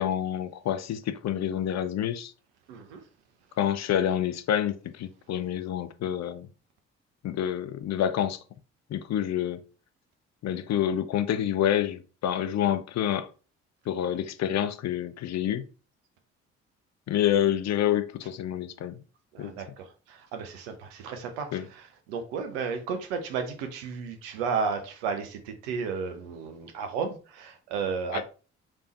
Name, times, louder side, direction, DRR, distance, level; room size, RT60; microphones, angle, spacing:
voice 1, 0.0-2.3 3.6-6.5 7.2-8.4 8.9-9.6 10.4-13.3 13.9-15.7 17.1-19.0 19.4-19.5 21.5-21.6 28.1-28.2, left 10 dB, 50° left, 0.6 m, -28 dB
voice 2, 2.7-3.0 19.3-28.2, right 5 dB, 80° right, 0.8 m, -33 dB
3.5 x 3.3 x 4.1 m
hypercardioid pair, 45°, 34 cm